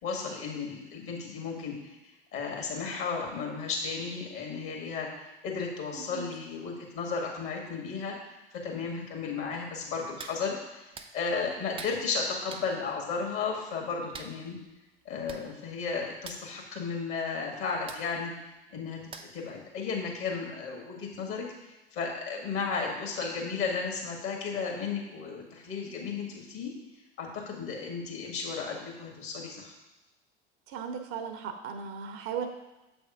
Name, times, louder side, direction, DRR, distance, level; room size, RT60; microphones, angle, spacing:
voice 1, 0.0-2.0 2.3-14.6 15.1-18.3 18.7-19.0 19.3-21.5 21.9-26.7 27.2-29.7, left 5 dB, 45° left, 1 dB, 1.8 m, -34 dB
voice 2, 5.9-6.2 30.7-32.5, right 7 dB, 45° right, 6 dB, 0.8 m, -36 dB
Hands, 10.2-10.4 10.9-11.1 11.8-12.0 12.5-12.7 14.1-14.3 15.0-15.1 15.3-15.5 15.7-15.9 16.2-16.4 17.9-18.0 19.1-19.5 19.9-20.0, right 5 dB, 20° right, 0.5 m, -43 dB
7.5 x 3.6 x 4.9 m, 1.0 s
figure-of-eight pair, 75°, 30 cm